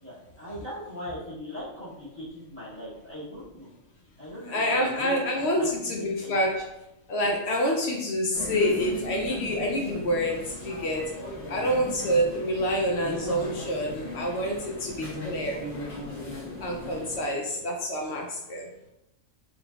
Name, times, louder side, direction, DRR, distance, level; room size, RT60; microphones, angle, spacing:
voice 1, 0.0-3.7 4.2-6.4 17.3-17.6, equal, 10° left, -9 dB, 1.4 m, -40 dB
voice 2, 4.5-6.7 7.1-11.1 11.5-15.7 16.6-18.7, equal, 65° left, 0 dB, 0.8 m, -27 dB
sound 1, 8.3-17.2, left 1 dB, 45° left, 1.0 m, -37 dB
3.9 x 3.2 x 2.3 m, 0.89 s
omnidirectional pair, 1.3 m